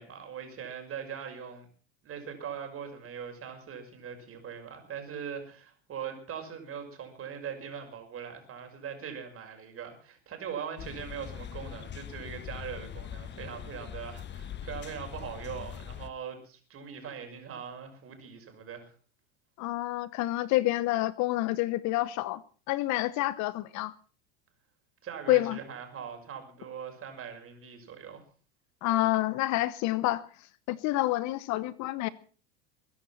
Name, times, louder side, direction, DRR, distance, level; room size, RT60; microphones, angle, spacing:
voice 1, 0.0-1.7 2.0-18.9 25.0-28.2, right 7 dB, 35° right, 6.0 m, -41 dB
sound 1, 10.8-16.1, left 9 dB, 30° left, 1.2 m, -42 dB
voice 2, 19.6-22.4 22.7-23.9 25.3-25.6 28.8-30.2 30.7-32.1, left 17 dB, 50° left, 1.0 m, -28 dB
22.0 x 11.0 x 5.9 m
hypercardioid pair, 105°, 37 cm